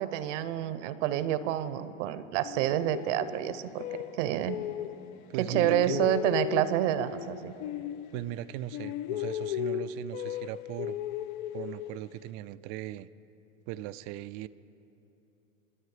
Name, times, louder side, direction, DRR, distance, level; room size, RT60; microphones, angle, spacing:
voice 1, 0.0-3.8 4.2-4.6 5.4-7.5, right 12 dB, 65° right, 14 dB, 0.9 m, -28 dB
sound 1, 2.4-5.2 5.5-8.5 8.7-12.2, left 11 dB, 50° left, 0.7 m, -36 dB
voice 2, 5.3-6.1 8.1-11.0 11.5-13.1 13.7-14.5, right 13 dB, 40° right, 16 dB, 0.4 m, -38 dB
25.5 x 9.6 x 4.9 m, 2.9 s
supercardioid pair, 120°, 39 cm